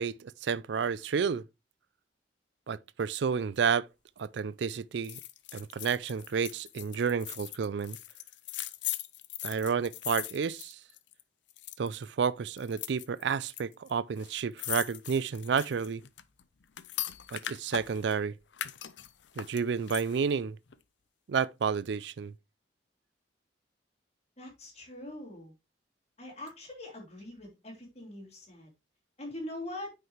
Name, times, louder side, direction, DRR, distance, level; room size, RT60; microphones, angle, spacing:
voice 1, 0.0-1.4 2.7-3.9 4.2-5.2 5.5-8.0 9.4-10.8 11.8-16.0 17.3-18.3 19.4-20.6 21.3-22.3, right 6 dB, 70° right, 0.4 m, -31 dB
sound 1, 5.0-11.2 11.5-12.0 12.6-13.6 13.9-14.0 14.2-18.2 18.5-20.3 20.7-20.8, left 13 dB, 75° left, 0.6 m, -40 dB
voice 2, 24.4-25.5 26.2-28.7 29.2-29.9, left 1 dB, 35° left, 3.2 m, -43 dB
9.3 x 5.5 x 3.2 m
head